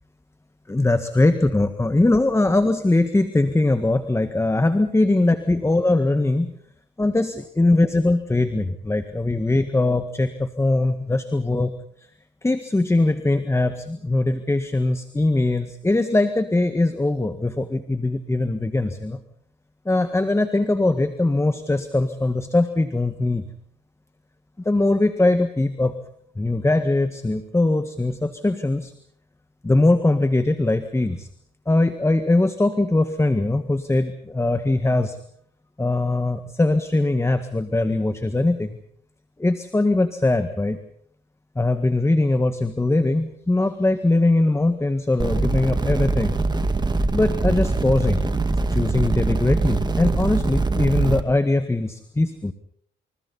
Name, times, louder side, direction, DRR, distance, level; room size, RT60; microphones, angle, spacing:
voice 1, 0.7-6.5 7.0-11.7 12.4-19.2 19.9-23.4 24.7-25.9 26.4-28.9 29.6-31.3 31.7-35.2 35.8-38.8 39.4-40.8 41.6-46.4 47.1-48.4 48.7-52.5, left 2 dB, 15° left, 9 dB, 1.8 m, -21 dB
sound 1, 45.2-51.2, right 3 dB, 20° right, 2.3 m, -23 dB
28.5 x 28.0 x 4.2 m, 0.63 s
cardioid pair, 90°, 20 cm